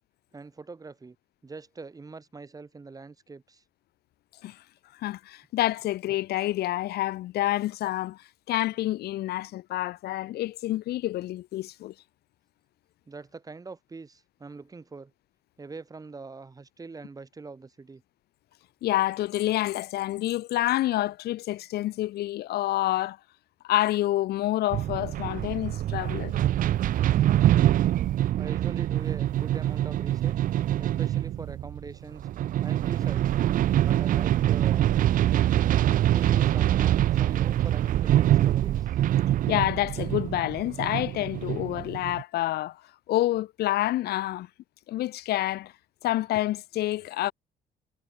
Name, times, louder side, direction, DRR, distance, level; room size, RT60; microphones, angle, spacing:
voice 1, 0.3-1.2 1.4-3.6 13.1-15.1 15.6-18.0 28.4-30.4 30.8-32.3 32.6-33.5 33.8-34.9 36.1-39.0, right 4 dB, 20° right, 2.3 m, -43 dB
voice 2, 5.0-8.2 8.5-11.9 18.8-23.2 23.6-26.3 39.5-42.8 43.1-44.5 44.9-45.7 46.0-47.3, left 15 dB, 70° left, 1.3 m, -28 dB
sound 1, 24.7-42.2, right 12 dB, 55° right, 0.6 m, -24 dB
cardioid pair, 110°, 17 cm